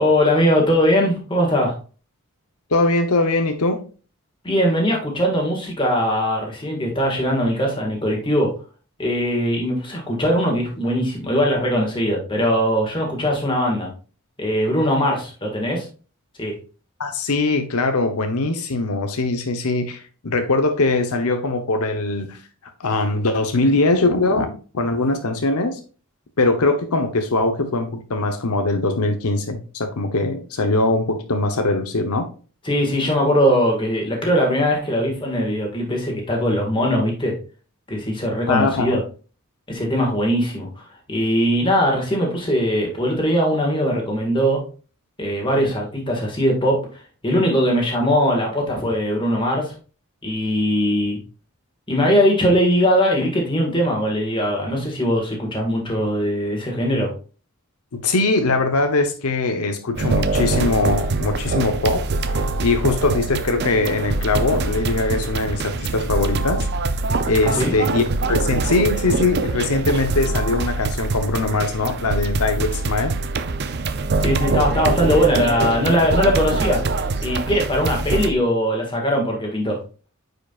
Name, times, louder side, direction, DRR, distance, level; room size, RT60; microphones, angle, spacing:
voice 1, 0.0-1.7 4.4-8.5 9.0-13.9 14.4-15.9 16.4-16.6 32.6-37.3 37.9-39.0 39.7-40.8 41.1-44.6 45.2-46.8 47.2-49.7 50.2-51.2 51.9-57.1 67.5-67.7 74.2-76.8 77.2-79.8, equal, 20° left, 0 dB, 1.9 m, -20 dB
voice 2, 2.7-3.8 17.0-22.4 22.8-25.8 26.4-32.3 38.5-39.0 57.9-62.1 62.3-66.7 67.3-73.1, left 2 dB, 85° left, 6 dB, 0.9 m, -21 dB
sound 1, 60.0-78.3, right 3 dB, 45° right, 0.5 m, -24 dB
9.2 x 5.0 x 2.4 m, 0.37 s
head